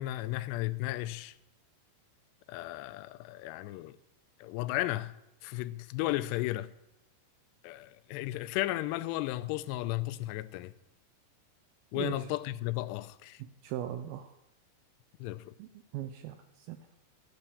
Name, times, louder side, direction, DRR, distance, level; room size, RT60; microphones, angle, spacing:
voice 1, 0.0-1.4 2.5-4.0 4.4-5.2 5.4-6.7 7.6-10.7 11.9-13.4 15.2-15.5, left 16 dB, 85° left, 2.7 m, -34 dB
voice 2, 11.9-12.3 13.4-14.3 15.6-16.8, right 12 dB, 80° right, 2.3 m, -39 dB
13.5 x 9.0 x 6.8 m
omnidirectional pair, 4.9 m